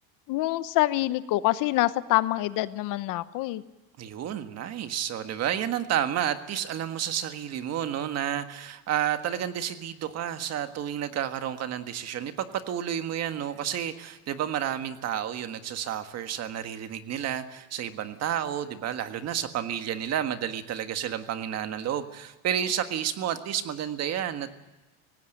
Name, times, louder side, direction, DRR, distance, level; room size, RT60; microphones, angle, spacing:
voice 1, 0.3-3.6, left 17 dB, 55° left, 15 dB, 0.9 m, -26 dB
voice 2, 4.0-24.5, right 10 dB, 40° right, 9 dB, 1.6 m, -31 dB
18.5 x 16.5 x 8.9 m, 1.1 s
cardioid pair, 140°, 39 cm